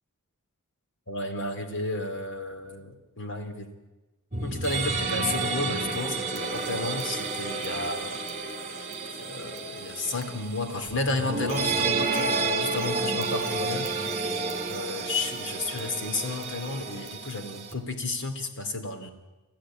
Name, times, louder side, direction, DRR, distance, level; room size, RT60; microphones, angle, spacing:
voice 1, 1.1-3.7 4.4-8.2 9.1-14.1 14.7-19.1, left 2 dB, 55° left, 7 dB, 2.7 m, -32 dB
sound 1, 4.3-17.8, right 3 dB, 30° right, 2.7 m, -31 dB
30.0 x 14.0 x 8.9 m, 1.1 s
head